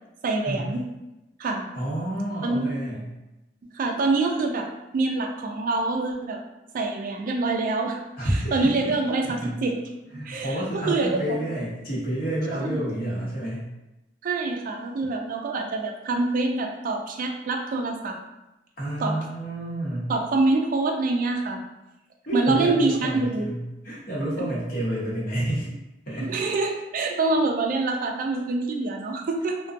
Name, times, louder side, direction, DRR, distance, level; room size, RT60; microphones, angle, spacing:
voice 1, 0.2-0.8 1.4-1.7 2.4-2.8 3.7-4.7 4.9-6.4 6.7-8.0 8.2-9.7 10.1-11.4 12.5-12.9 14.2-18.2 19.0-19.2 20.1-21.6 22.3-23.5 24.4-24.5 26.2-29.6, right 3 dB, 50° right, 3 dB, 0.3 m, -25 dB
voice 2, 1.7-3.1 8.2-8.7 9.2-9.6 10.1-13.7 18.8-20.1 22.3-25.7 26.1-26.3, right 1 dB, 55° left, -6 dB, 0.9 m, -29 dB
2.4 x 2.2 x 2.5 m, 0.97 s
head